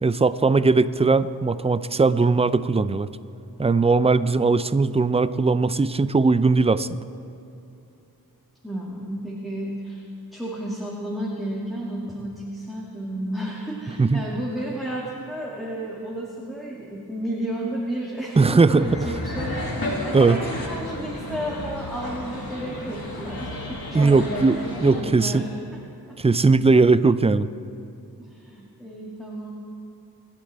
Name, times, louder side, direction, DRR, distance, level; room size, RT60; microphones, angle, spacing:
voice 1, 0.0-3.1 3.6-7.0 14.0-14.2 18.4-18.9 20.1-20.4 23.9-25.4 26.2-27.5, right 3 dB, 15° right, 14 dB, 0.4 m, -19 dB
voice 2, 8.6-10.0 10.3-26.2 28.2-29.6, right 1 dB, ahead, -5 dB, 2.1 m, -32 dB
sound 1, 18.8-25.0, left 1 dB, 70° left, 2.4 m, -32 dB
26.0 x 10.0 x 3.4 m, 2.7 s
wide cardioid pair, 60°, 37 cm